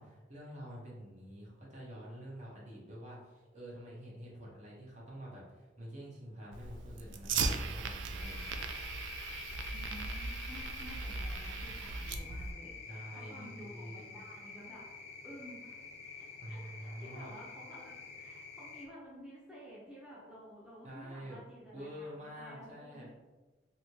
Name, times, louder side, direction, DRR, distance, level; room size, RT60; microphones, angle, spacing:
voice 1, 0.0-8.6 12.8-14.0 16.4-17.3 20.8-21.4 21.7-23.1, equal, 40° right, -4 dB, 0.8 m, -47 dB
Fire, 6.5-12.5, right 4 dB, 90° right, 0.3 m, -38 dB
sound 1, 8.2-18.9, left 5 dB, 35° left, 0.4 m, -48 dB
voice 2, 9.7-14.8 15.2-23.1, equal, 5° right, -7 dB, 0.6 m, -52 dB
3.0 x 2.7 x 2.8 m, 1.2 s
head